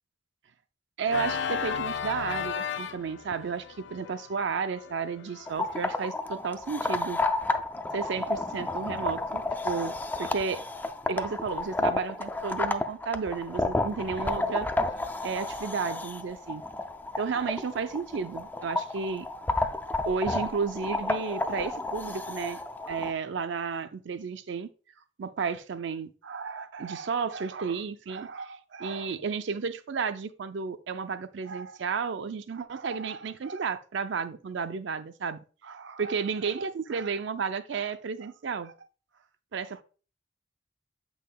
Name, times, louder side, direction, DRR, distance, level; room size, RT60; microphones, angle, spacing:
voice 1, 1.0-7.2 7.9-10.6 11.1-14.7 15.2-16.6 17.2-19.3 20.0-22.6 22.9-24.7 25.2-38.7 39.5-39.8, right 5 dB, 65° right, 0.4 m, -32 dB
Organ, 1.1-5.9, left 6 dB, 65° left, 0.4 m, -35 dB
sound 1, 5.5-23.1, left 2 dB, 10° left, 0.4 m, -31 dB
8.3 x 5.6 x 2.2 m
head